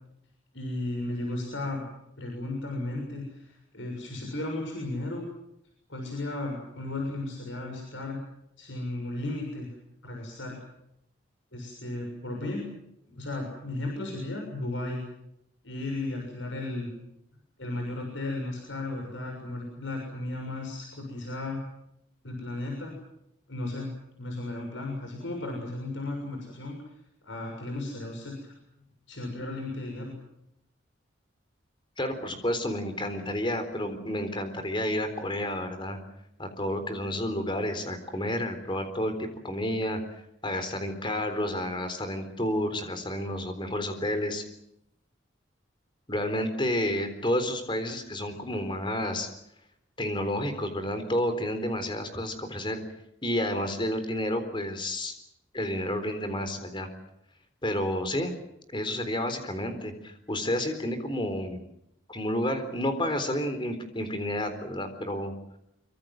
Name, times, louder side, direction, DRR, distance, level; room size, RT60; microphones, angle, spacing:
voice 1, 0.5-1.9 2.2-5.2 5.9-8.2 8.6-9.7 10.0-10.6 11.5-12.6 13.1-15.0 15.6-16.9 17.6-21.6 22.2-22.9 23.5-23.9 24.2-26.8 27.2-28.5 29.1-30.1, left 2 dB, 70° left, 1 dB, 6.7 m, -35 dB
voice 2, 32.0-36.0 36.4-44.4 46.1-49.3 50.0-52.8 53.2-55.1 55.5-56.9 57.6-58.3 58.7-61.6 62.1-65.3, left 1 dB, 25° left, 8 dB, 3.9 m, -30 dB
25.5 x 24.5 x 7.7 m, 0.79 s
head